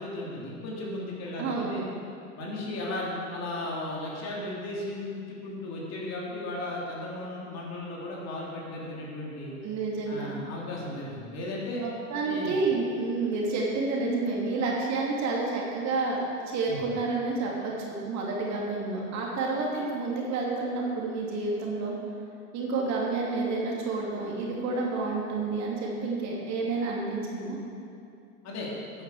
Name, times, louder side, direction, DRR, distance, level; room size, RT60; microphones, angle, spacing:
voice 1, 0.0-1.8 2.4-9.5 10.1-11.8 12.2-12.5 16.7-16.8 28.4-28.7, left 1 dB, 35° left, -4 dB, 3.5 m, -35 dB
voice 2, 1.4-1.8 9.6-10.3 11.8-21.9 22.5-27.6, right 3 dB, 40° right, -3 dB, 2.9 m, -29 dB
13.5 x 9.7 x 5.0 m, 2.5 s
hypercardioid pair, 95°, 43 cm